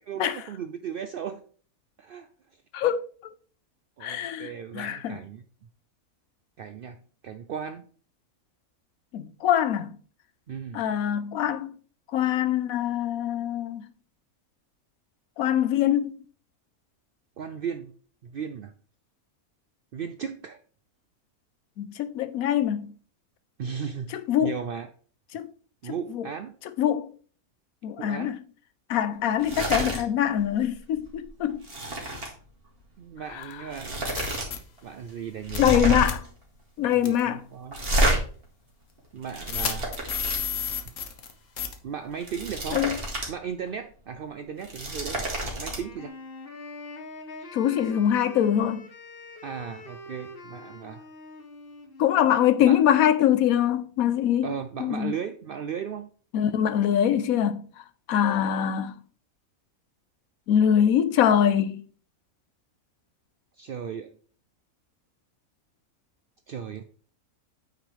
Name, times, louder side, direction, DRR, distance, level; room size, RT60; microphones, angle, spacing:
voice 1, 0.0-1.4 2.0-2.3 4.0-5.4 6.6-7.0 7.2-7.8 10.5-10.9 17.4-17.9 18.2-18.7 19.9-20.6 23.6-24.2 24.4-24.9 25.8-26.6 28.0-28.4 33.0-34.1 34.8-36.0 36.8-37.9 39.1-39.9 41.8-42.8 43.3-46.1 47.4-47.5 49.4-51.0 52.6-52.8 54.4-56.1 63.6-64.1 66.5-66.8, right 7 dB, 75° right, 0.5 m, -36 dB
voice 2, 2.7-3.0 4.0-5.2 9.1-9.9 10.7-11.7 12.1-13.9 15.4-16.2 21.8-22.9 24.1-24.6 25.3-25.5 25.8-26.3 26.8-27.1 27.8-28.4 28.9-31.7 33.3-33.4 35.6-36.3 36.8-37.4 42.7-43.0 47.5-48.8 52.0-54.5 54.8-55.1 56.3-57.6 58.1-58.9 60.5-61.8, left 10 dB, 75° left, 1.1 m, -23 dB
sound 1, 29.4-30.0 30.4-30.6 31.0-32.3 33.3-33.4 33.7-34.5 34.8-34.9 35.4-36.3 37.7-38.2 39.0-40.4 42.0-43.3 43.7-43.8 44.5-45.8, right 1 dB, 40° right, 2.2 m, -29 dB
sound 2, 33.4-33.5 34.1-34.6 35.5-35.8 36.0-36.1 37.0-37.2 37.9-38.0 39.5-41.3 41.6-41.7, left 8 dB, 60° left, 1.3 m, -31 dB
Wind instrument woodwind instrument, 45.5-53.3, left 2 dB, 45° left, 1.2 m, -44 dB
9.1 x 5.6 x 3.3 m
omnidirectional pair, 1.5 m